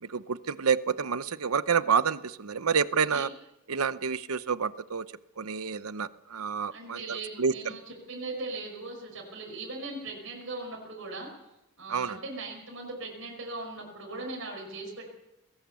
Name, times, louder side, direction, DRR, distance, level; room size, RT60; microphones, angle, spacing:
voice 1, 0.0-3.3 3.7-5.1 5.4-7.7 11.9-12.2, right 6 dB, 90° right, 14 dB, 0.8 m, -28 dB
voice 2, 6.7-11.3 11.8-15.1, right 3 dB, 65° right, -1 dB, 5.5 m, -39 dB
20.5 x 18.0 x 7.0 m, 0.91 s
head